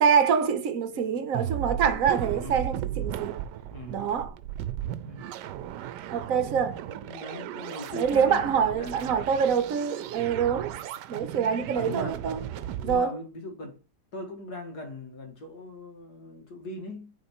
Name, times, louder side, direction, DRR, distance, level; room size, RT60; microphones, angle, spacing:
voice 1, 0.0-3.4 3.9-4.3 6.1-6.8 7.9-10.7 11.1-12.4 12.8-13.2, right 7 dB, 60° right, 1.1 m, -25 dB
voice 2, 0.9-1.5 2.3-2.7 3.6-4.0 4.9-5.2 6.9-9.6 11.7-12.3 12.8-13.8 14.1-17.1, left 1 dB, 65° left, 2.1 m, -41 dB
sound 1, 1.3-13.0, right 11 dB, 80° right, 1.2 m, -36 dB
6.8 x 4.1 x 4.4 m
omnidirectional pair, 1.8 m